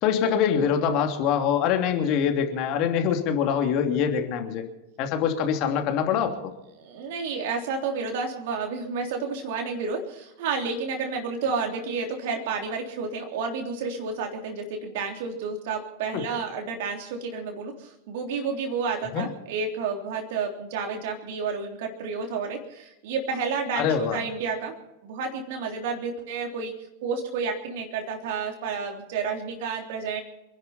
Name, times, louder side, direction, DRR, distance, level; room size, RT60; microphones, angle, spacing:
voice 1, 0.0-4.7 5.0-6.3 16.1-16.2 19.1-19.2 23.7-24.2, left 8 dB, 40° left, 4 dB, 2.8 m, -24 dB
voice 2, 6.8-24.8 25.0-26.7 27.0-30.2, right 5 dB, 50° right, 2 dB, 3.4 m, -30 dB
28.5 x 11.5 x 4.4 m, 0.94 s
figure-of-eight pair, 90°, 0 cm